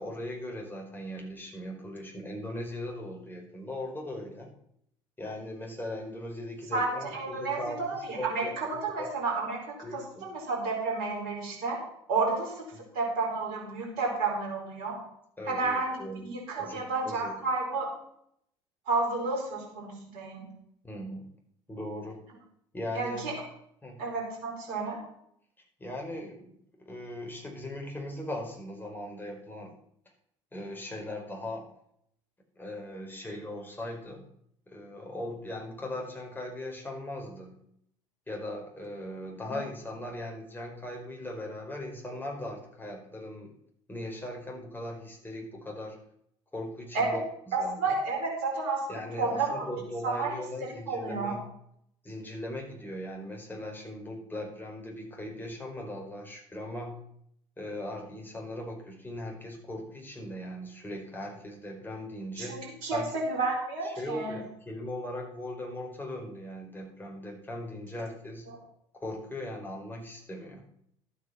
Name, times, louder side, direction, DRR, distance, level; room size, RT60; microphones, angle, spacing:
voice 1, 0.0-4.5 5.2-9.1 9.8-10.2 12.7-12.8 15.4-16.2 16.5-17.4 20.8-21.3 21.7-22.2 22.7-23.3 23.8-24.0 25.8-29.8 30.5-31.7 32.6-34.3 34.7-37.6 38.3-43.5 43.9-46.0 46.5-47.2 47.5-47.9 48.9-51.4 52.0-57.0 57.6-63.1 63.8-68.5 68.9-70.6, left 1 dB, 15° left, 0 dB, 4.7 m, -39 dB
voice 2, 6.7-11.8 12.1-12.7 12.9-15.0 15.5-16.0 16.2-17.9 18.9-20.5 22.9-23.3 24.0-25.0 39.4-39.6 46.9-47.1 47.5-49.7 50.0-50.3 50.9-51.3 62.4-64.4, right 3 dB, 65° right, -1 dB, 4.5 m, -31 dB
12.0 x 8.4 x 5.8 m, 0.70 s
hypercardioid pair, 60°, 15 cm